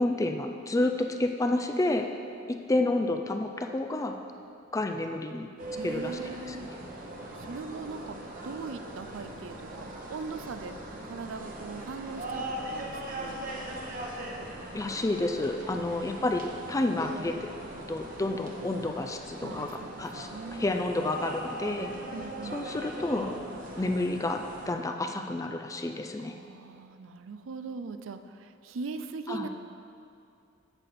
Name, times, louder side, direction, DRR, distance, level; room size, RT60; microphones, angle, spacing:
voice 1, 0.0-2.1 2.5-4.2 4.7-5.5 5.8-6.2 6.5-6.7 14.7-16.4 16.7-17.4 17.9-20.3 20.6-21.9 22.5-23.4 23.8-26.4 29.3-29.5, left 2 dB, 15° left, 5 dB, 0.4 m, -30 dB
sound 1, 5.6-24.7, right 1 dB, 45° right, 1.0 m, -40 dB
voice 2, 5.8-6.7 7.3-8.2 8.4-10.8 11.0-13.4 15.7-16.1 19.4-20.7 22.1-22.6 26.2-29.5, right 4 dB, 80° right, 10 dB, 0.5 m, -40 dB
8.9 x 7.3 x 4.2 m, 2.5 s
head